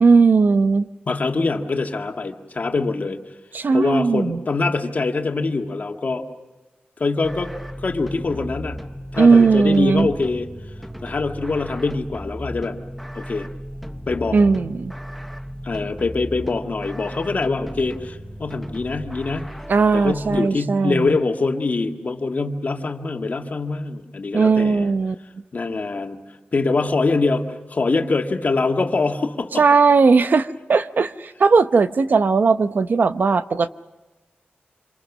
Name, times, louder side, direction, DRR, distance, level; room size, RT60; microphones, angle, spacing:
voice 1, 0.0-0.9 3.5-4.4 9.2-10.1 14.3-14.9 19.7-21.2 24.3-25.1 29.6-33.7, right 4 dB, 60° right, 11 dB, 0.9 m, -17 dB
voice 2, 1.1-3.2 3.7-6.2 7.0-7.5 7.8-8.9 9.1-10.5 11.0-12.8 13.2-13.5 14.1-14.4 15.6-19.5 19.9-24.9 25.5-26.2 26.5-29.6, left 3 dB, 50° left, 3 dB, 2.0 m, -24 dB
sound 1, 7.2-20.4, equal, ahead, 0.8 m, -35 dB
26.5 x 26.5 x 6.2 m, 1.1 s
wide cardioid pair, 105°, 4 cm